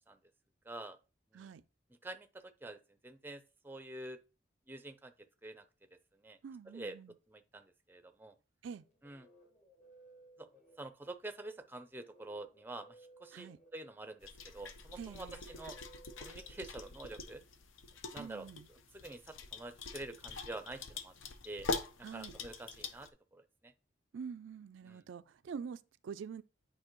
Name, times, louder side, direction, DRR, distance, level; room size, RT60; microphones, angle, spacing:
voice 1, 0.7-1.0 1.3-1.5 2.0-4.2 4.7-5.1 5.4-5.6 6.2-6.4 6.7-6.9 7.3-8.3 9.0-9.3 10.4-10.5 10.8-15.8 16.2-17.4 18.1-18.5 18.9-21.1 21.4-21.7 22.1-23.7 24.8-25.0, right 2 dB, 10° right, 0.5 m, -47 dB
voice 2, 6.4-7.1 8.6-8.8 13.3-13.6 15.0-15.4 18.2-18.7 22.0-22.3 24.1-26.4, right 6 dB, 75° right, 0.4 m, -46 dB
sound 1, 8.7-17.4, right 2 dB, 35° left, 1.4 m, -62 dB
sound 2, 14.2-23.1, left 3 dB, 85° left, 0.7 m, -44 dB
8.8 x 5.0 x 3.0 m
head